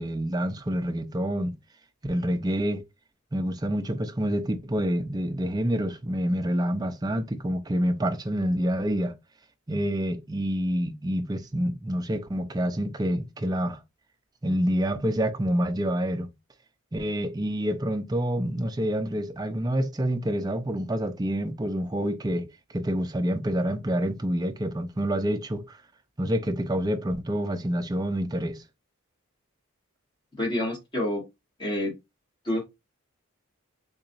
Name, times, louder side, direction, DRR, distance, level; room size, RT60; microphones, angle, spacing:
voice 1, 0.0-1.6 2.0-2.8 3.3-9.2 9.7-13.8 14.4-16.3 16.9-25.8 26.2-28.6, equal, 20° right, 0.4 m, -27 dB
voice 2, 30.4-31.2 31.6-31.9 32.4-32.6, left 1 dB, 20° left, 1.3 m, -27 dB
3.7 x 2.9 x 2.6 m
head